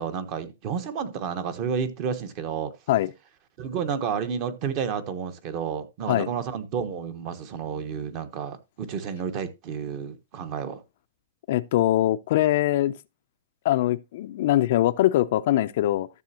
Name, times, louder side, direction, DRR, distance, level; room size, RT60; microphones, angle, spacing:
voice 1, 0.0-2.7 3.6-10.8, right 7 dB, 35° right, 1.1 m, -31 dB
voice 2, 11.5-12.9 13.6-16.1, left 14 dB, 50° left, 0.5 m, -22 dB
13.0 x 6.9 x 2.8 m
hypercardioid pair, 160°, 0 cm